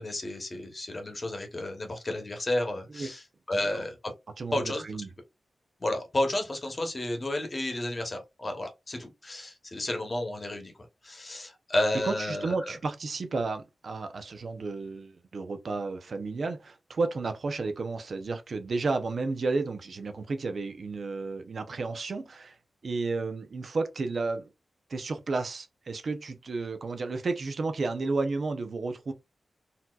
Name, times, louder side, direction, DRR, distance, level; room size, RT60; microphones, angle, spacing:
voice 1, 0.0-4.1 4.5-4.8 5.8-10.7 11.0-12.7, left 1 dB, 30° left, 1.0 m, -32 dB
voice 2, 4.4-5.1 12.0-22.6 22.8-24.5 24.9-29.1, right 3 dB, 55° right, 0.6 m, -32 dB
4.1 x 2.8 x 2.4 m
wide cardioid pair, 140°, 0 cm